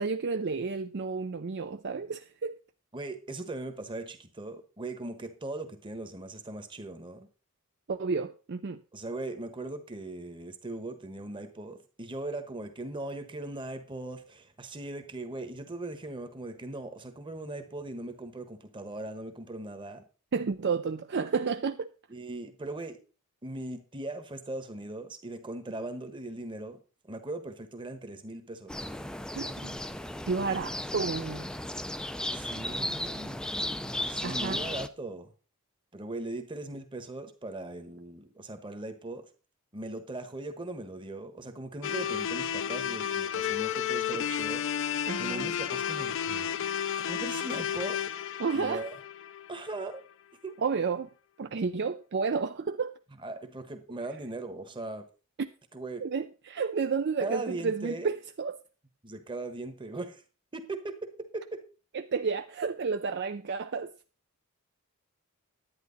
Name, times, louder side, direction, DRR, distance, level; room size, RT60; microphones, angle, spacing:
voice 1, 0.0-2.5 7.9-8.8 20.3-21.9 29.4-29.7 30.3-31.5 34.2-34.6 45.1-45.5 48.4-48.8 50.6-51.1 51.4-52.9 55.4-55.5 56.0-58.6 61.9-63.9, right 5 dB, 50° right, 0.5 m, -31 dB
voice 2, 2.9-7.3 8.9-20.0 22.1-23.0 23.4-26.8 27.1-28.9 32.3-33.4 34.1-35.3 35.9-39.3 39.7-44.6 45.2-46.5 47.1-48.0 48.5-48.9 49.5-50.0 50.4-50.6 53.2-55.0 55.7-56.0 57.2-58.1 59.0-60.2 60.5-61.6, right 2 dB, 20° right, 1.2 m, -39 dB
sound 1, 28.7-34.9, left 1 dB, 5° left, 0.4 m, -35 dB
sound 2, 41.8-49.9, left 8 dB, 60° left, 0.5 m, -32 dB
11.0 x 9.3 x 4.0 m
head